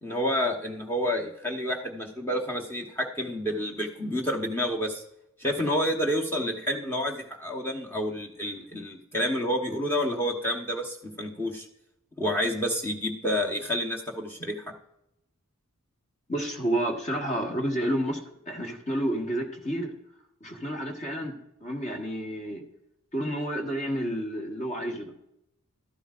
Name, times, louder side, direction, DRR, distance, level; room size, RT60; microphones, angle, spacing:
voice 1, 0.0-5.0 5.4-11.7 12.2-14.6, equal, 10° left, 0 dB, 1.0 m, -29 dB
voice 2, 16.3-18.2 18.5-19.9 20.4-21.3 21.6-22.6 23.1-25.1, right 1 dB, 30° left, 2 dB, 1.4 m, -30 dB
12.5 x 11.0 x 2.5 m, 0.81 s
head